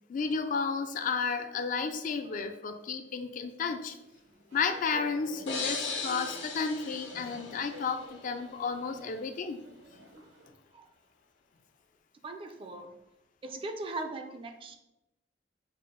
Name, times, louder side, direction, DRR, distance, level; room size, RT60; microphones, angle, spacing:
voice 1, 0.1-4.0 4.5-9.6, left 5 dB, 45° left, 8 dB, 0.3 m, -32 dB
sound 1, 3.9-10.5, right 1 dB, 85° right, 0.9 m, -51 dB
sound 2, 5.5-8.2, left 4 dB, 75° left, 0.8 m, -37 dB
voice 2, 12.2-12.9 13.4-14.8, right 2 dB, 30° right, 6 dB, 0.4 m, -39 dB
5.5 x 2.0 x 3.6 m, 0.91 s
head